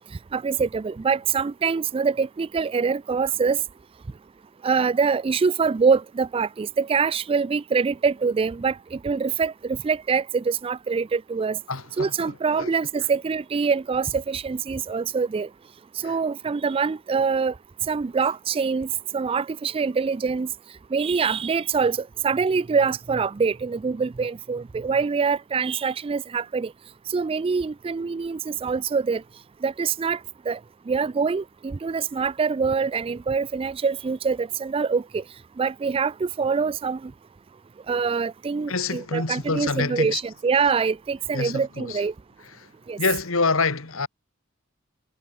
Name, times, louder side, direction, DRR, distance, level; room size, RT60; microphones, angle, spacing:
voice 1, 0.3-3.6 4.6-11.6 12.0-15.5 16.0-17.5 17.9-20.5 20.9-26.7 27.1-29.2 29.6-30.2 30.5-30.6 30.9-35.2 35.6-37.1 37.9-42.1 42.9-43.0, right 5 dB, 25° right, 0.3 m, -24 dB
voice 2, 11.7-12.7 16.0-16.2 38.7-40.2 41.3-42.0 43.0-44.1, left 4 dB, 70° left, 2.2 m, -27 dB
head